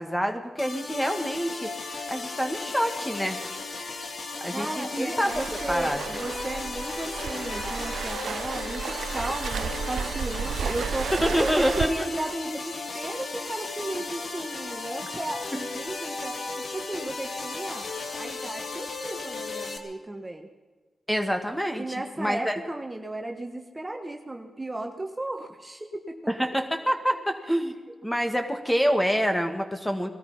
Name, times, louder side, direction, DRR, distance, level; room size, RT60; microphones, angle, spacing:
voice 1, 0.0-3.4 3.9-4.0 4.4-5.3 5.7-6.0 11.1-11.9 15.5-15.6 21.1-22.6 26.3-27.7 28.0-30.1, equal, 5° left, 6 dB, 2.0 m, -27 dB
sound 1, 0.6-19.8, left 3 dB, 65° left, 1.9 m, -35 dB
voice 2, 4.5-11.1 11.4-17.9 18.2-20.5 21.8-26.3, right 2 dB, 20° right, 4 dB, 1.4 m, -35 dB
Waves surf, 5.3-11.8, right 6 dB, 80° right, 0.6 m, -33 dB
20.0 x 13.0 x 5.6 m, 1.3 s
cardioid pair, 55°, 0 cm